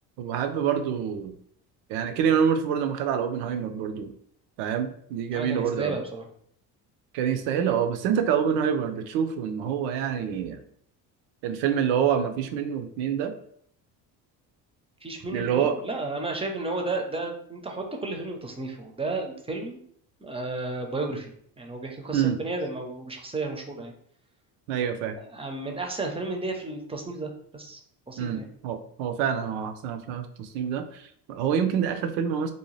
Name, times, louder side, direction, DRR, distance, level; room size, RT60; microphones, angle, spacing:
voice 1, 0.2-1.3 1.9-4.1 4.6-6.0 7.1-10.6 11.4-13.3 15.3-15.8 22.1-22.4 24.7-25.1 28.2-32.5, right 8 dB, 80° right, 8 dB, 0.5 m, -26 dB
voice 2, 5.3-6.3 15.0-19.8 20.2-23.9 25.2-27.8 28.1-28.5, right 2 dB, 15° right, 2 dB, 0.5 m, -33 dB
2.7 x 2.2 x 3.1 m, 0.65 s
supercardioid pair, 80°, 44 cm